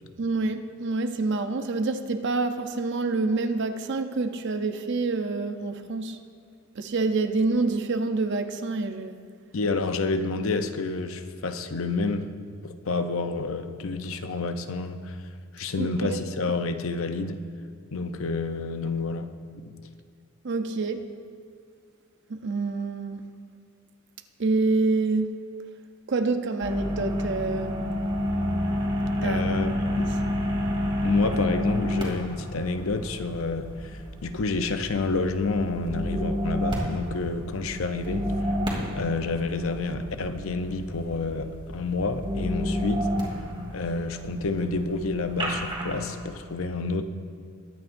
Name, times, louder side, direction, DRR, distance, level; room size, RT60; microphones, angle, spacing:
voice 1, 0.2-6.2 6.8-9.2 15.8-16.2 20.4-21.1 22.3-23.3 24.4-25.4 26.1-27.8 29.2-29.4 30.0-30.2, right 3 dB, 55° right, 0.6 m, -27 dB
voice 2, 9.5-12.3 12.6-15.2 15.5-17.4 17.9-19.3 29.2-30.1 31.0-38.6 38.9-43.1 43.7-47.0, left 3 dB, 65° left, 0.6 m, -29 dB
sound 1, 26.6-46.1, equal, 25° right, 2.2 m, -30 dB
21.5 x 8.8 x 2.6 m
head